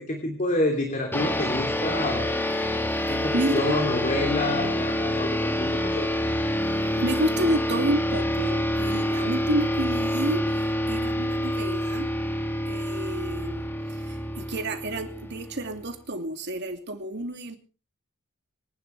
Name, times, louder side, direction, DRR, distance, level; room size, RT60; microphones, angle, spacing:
voice 1, 0.0-2.3 3.1-6.1, left 2 dB, 40° left, 3.2 m, -28 dB
sound 1, 1.1-15.9, left 1 dB, 10° left, 1.8 m, -27 dB
voice 2, 3.0-3.8 7.0-12.1 12.7-13.6 14.4-17.6, right 1 dB, 55° right, 2.7 m, -30 dB
26.0 x 11.5 x 3.4 m
head